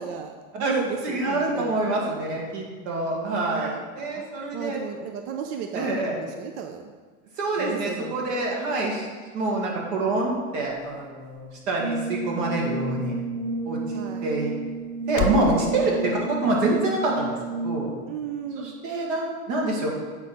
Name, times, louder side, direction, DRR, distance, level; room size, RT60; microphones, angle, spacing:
voice 1, 0.0-2.4 3.1-3.8 4.2-4.3 4.5-6.8 7.6-8.3 13.9-14.3 15.4-16.1 18.1-18.7, right 7 dB, 35° right, 5 dB, 0.4 m, -35 dB
voice 2, 1.0-4.8 5.7-6.2 7.4-9.1 9.3-13.2 13.6-14.5 15.1-17.4 17.6-17.9 18.6-19.9, right 2 dB, 60° right, -1 dB, 2.1 m, -26 dB
sound 1, 9.3-15.5, left 5 dB, 60° left, 0.8 m, -38 dB
Brass instrument, 11.8-18.2, right 3 dB, 75° right, 1.1 m, -31 dB
8.0 x 4.9 x 4.2 m, 1.5 s
supercardioid pair, 145°, 43 cm